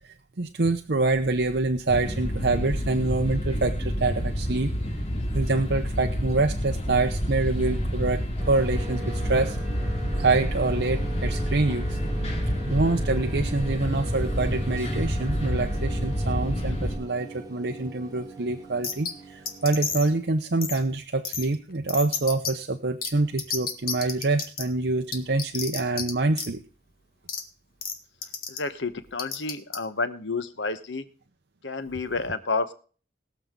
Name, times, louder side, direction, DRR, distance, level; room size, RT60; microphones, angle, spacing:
voice 1, 0.0-4.7 5.3-9.9 10.1-12.0 12.6-26.6, right 3 dB, 70° right, 6 dB, 0.8 m, -26 dB
sound 1, 1.9-17.0, equal, 35° left, 2.5 m, -28 dB
sound 2, 8.4-20.0, right 2 dB, 20° right, 2.2 m, -41 dB
sound 3, 18.8-19.1 19.5-20.1 20.6-20.8 21.2-21.4 21.9-22.5 23.0-23.1 23.4-24.6 25.1-26.1 26.3-26.5 27.3-27.4 27.8-27.9 28.2-28.6 29.2-29.8, left 6 dB, 50° left, 1.9 m, -30 dB
voice 2, 28.5-31.0 31.6-32.7, left 3 dB, 90° left, 11 dB, 1.1 m, -30 dB
21.5 x 7.2 x 3.8 m, 0.40 s
head